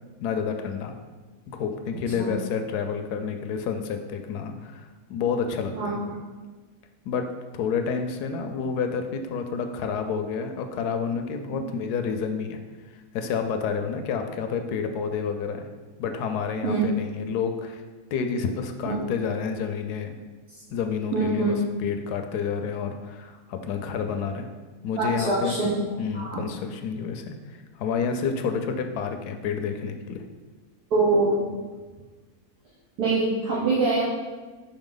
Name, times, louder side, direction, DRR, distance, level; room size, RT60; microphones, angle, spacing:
voice 1, 0.2-0.9 1.5-5.9 7.1-7.3 7.5-12.6 12.9-15.7 16.0-17.8 18.1-20.1 20.7-24.5 24.8-25.5 26.0-30.2, left 6 dB, 85° left, 6 dB, 1.1 m, -29 dB
voice 2, 18.9-19.2 21.1-21.6 25.0-25.7 26.1-26.4 30.9-31.4 33.0-34.1, right 3 dB, 80° right, -8 dB, 1.6 m, -24 dB
5.6 x 4.4 x 3.8 m, 1.3 s
omnidirectional pair, 1.7 m